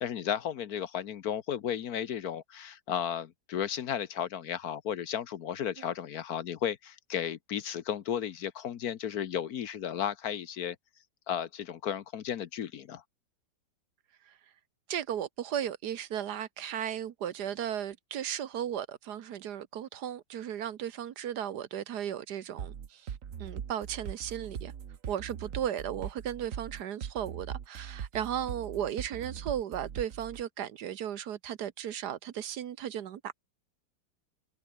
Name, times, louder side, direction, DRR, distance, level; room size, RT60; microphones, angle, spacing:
voice 1, 0.0-10.8 11.3-13.0, left 9 dB, 60° left, 1.3 m, -34 dB
voice 2, 14.9-23.1 23.4-24.7 25.1-33.3, right 10 dB, 65° right, 1.5 m, -35 dB
sound 1, 22.6-30.4, right 8 dB, 50° right, 1.4 m, -40 dB
omnidirectional pair, 1.9 m